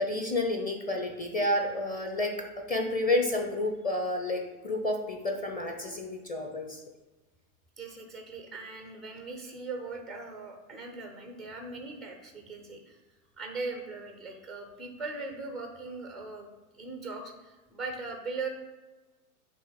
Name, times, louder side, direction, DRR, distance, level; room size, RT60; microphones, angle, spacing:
voice 1, 0.0-2.3 2.7-6.8, left 2 dB, 20° left, 2 dB, 0.8 m, -30 dB
voice 2, 7.8-13.0 13.4-18.5, right 3 dB, ahead, 3 dB, 0.3 m, -40 dB
7.6 x 3.0 x 5.0 m, 1.2 s
figure-of-eight pair, 95°, 45 cm